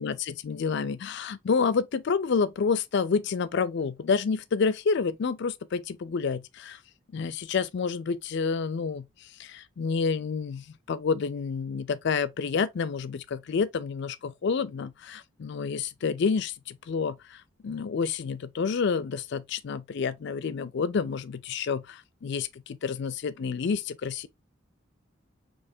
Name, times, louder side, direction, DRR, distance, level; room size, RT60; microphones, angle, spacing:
voice 1, 0.0-6.8 7.1-9.1 9.4-24.3, left 5 dB, 60° left, 0.4 m, -29 dB
4.2 x 2.9 x 2.7 m
head